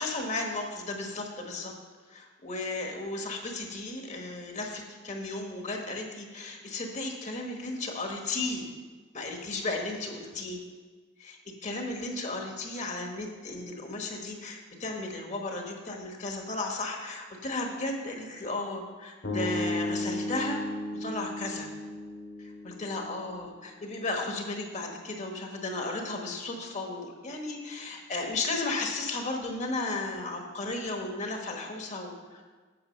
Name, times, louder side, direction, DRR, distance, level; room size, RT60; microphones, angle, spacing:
voice 1, 0.0-1.7 2.1-8.7 9.1-10.6 11.2-20.6 20.9-21.7 22.4-32.4, left 2 dB, 40° left, 2 dB, 1.3 m, -34 dB
sound 1, 19.2-23.4, left 1 dB, 70° left, 2.3 m, -34 dB
8.9 x 6.2 x 6.4 m, 1.4 s
head